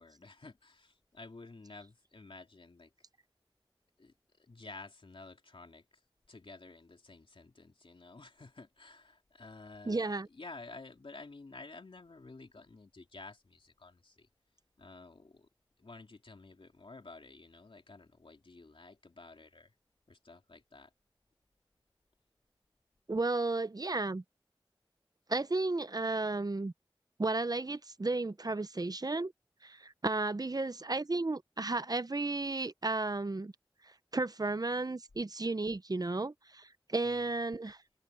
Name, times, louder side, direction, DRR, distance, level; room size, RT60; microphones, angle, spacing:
voice 1, 0.0-2.9 4.0-6.0 6.3-14.3 14.8-15.5 15.8-19.7 20.1-20.9 37.0-37.4, left 3 dB, 80° left, 3.2 m, -52 dB
voice 2, 9.9-10.3 23.1-24.2 25.3-26.7 27.2-29.3 29.6-33.5 34.1-37.8, right 3 dB, 45° right, 0.7 m, -33 dB
wide cardioid pair, 45°, 9 cm